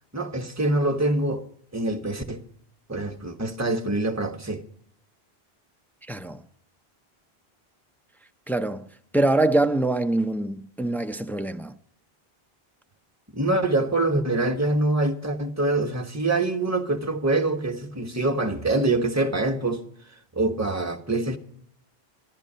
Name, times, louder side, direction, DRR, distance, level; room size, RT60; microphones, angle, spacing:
voice 1, 0.1-1.4 1.7-2.4 2.9-4.6 13.3-19.8 20.3-21.4, right 2 dB, 15° right, 1.2 m, -25 dB
voice 2, 6.1-6.4 8.5-8.9 9.1-11.7, right 2 dB, ahead, 0.4 m, -24 dB
14.0 x 12.0 x 5.6 m
omnidirectional pair, 1.1 m